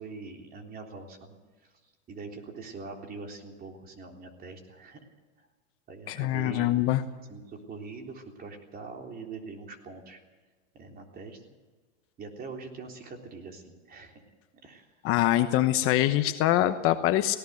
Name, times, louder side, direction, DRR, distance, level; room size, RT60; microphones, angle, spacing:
voice 1, 0.0-1.4 1.6-1.7 2.1-5.0 5.9-6.7 7.3-10.2 10.7-11.4 12.2-14.2 14.6-14.9, right 4 dB, 25° right, 3 dB, 3.6 m, -43 dB
voice 2, 6.1-7.0 15.0-17.4, left 14 dB, 35° left, 9 dB, 1.0 m, -24 dB
18.5 x 17.5 x 8.1 m, 1.3 s
supercardioid pair, 130°, 37 cm